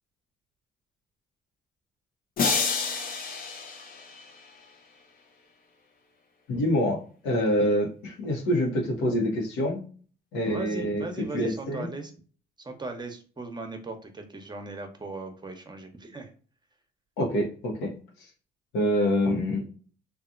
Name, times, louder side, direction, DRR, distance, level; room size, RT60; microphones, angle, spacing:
sound 1, 2.4-4.6, left 5 dB, 55° left, 0.8 m, -29 dB
voice 1, 6.5-9.8 10.3-11.1 11.3-11.9 17.2-17.9 18.7-19.7, equal, 85° left, 0 dB, 1.0 m, -26 dB
voice 2, 10.4-12.1 12.6-16.3, right 3 dB, 25° right, 5 dB, 0.8 m, -38 dB
2.7 x 2.5 x 2.4 m, 0.41 s
supercardioid pair, 65°, 18 cm